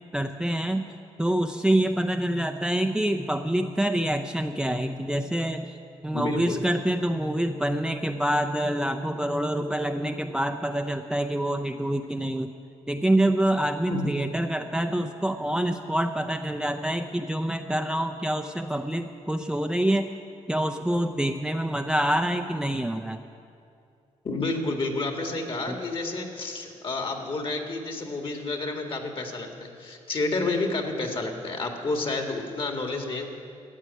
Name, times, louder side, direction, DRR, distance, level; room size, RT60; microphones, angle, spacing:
voice 1, 0.1-0.9 1.2-5.7 6.0-12.5 12.9-20.1 20.5-23.2, right 1 dB, 5° right, 5 dB, 0.6 m, -26 dB
voice 2, 6.1-6.6 13.9-14.1 24.2-33.3, left 2 dB, 45° left, 3 dB, 2.1 m, -30 dB
14.0 x 8.2 x 9.8 m, 2.5 s
cardioid pair, 90°, 12 cm